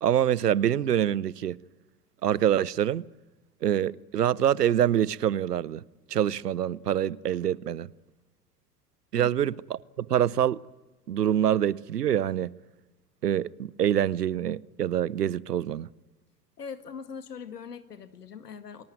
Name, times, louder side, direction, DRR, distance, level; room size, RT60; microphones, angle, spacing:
voice 1, 0.0-1.6 2.2-3.0 3.6-5.8 6.1-7.9 9.1-10.6 11.1-12.5 13.2-15.9, right 10 dB, 85° right, 0.8 m, -25 dB
voice 2, 16.6-18.8, left 6 dB, 85° left, 2.2 m, -41 dB
29.0 x 19.0 x 9.2 m
figure-of-eight pair, 90°, 46 cm